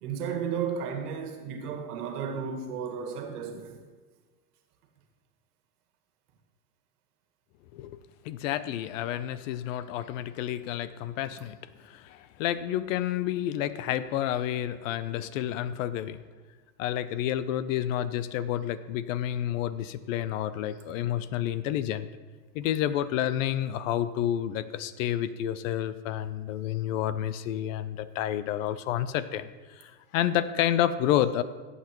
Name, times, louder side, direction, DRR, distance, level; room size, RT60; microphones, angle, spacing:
voice 1, 0.0-3.8, right 7 dB, 70° right, 1.8 m, -33 dB
voice 2, 8.2-16.2 16.8-22.1 22.5-29.5 29.8-31.4, left 11 dB, 55° left, 0.6 m, -30 dB
17.0 x 8.3 x 3.0 m
hypercardioid pair, 120°, 48 cm